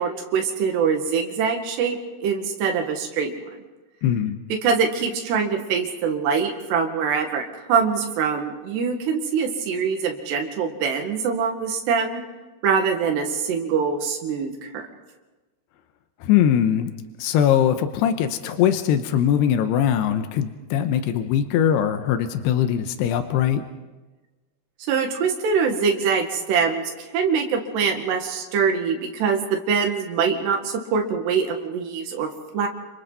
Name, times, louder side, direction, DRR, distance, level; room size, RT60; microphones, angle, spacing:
voice 1, 0.0-3.3 4.5-12.2 12.6-14.8 24.9-26.8 27.1-32.7, right 6 dB, 90° right, 3 dB, 4.0 m, -24 dB
voice 2, 4.0-4.4 16.2-16.9 17.2-23.6, left 9 dB, 90° left, 8 dB, 3.0 m, -21 dB
30.0 x 27.0 x 4.1 m, 1.2 s
omnidirectional pair, 4.7 m